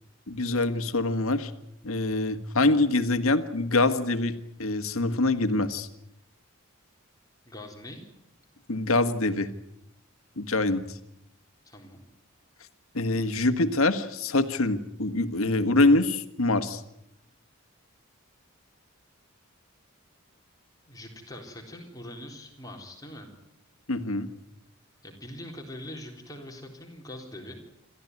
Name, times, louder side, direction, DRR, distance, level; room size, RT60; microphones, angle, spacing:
voice 1, 0.3-1.5 1.8-4.3 4.6-5.9 8.7-9.5 10.4-11.0 12.9-16.8 23.9-24.3, left 2 dB, 80° left, 9 dB, 1.7 m, -25 dB
voice 2, 7.5-8.0 11.6-12.0 20.9-23.3 25.0-27.6, left 1 dB, 15° left, 2 dB, 3.8 m, -43 dB
28.0 x 14.0 x 9.6 m, 0.80 s
head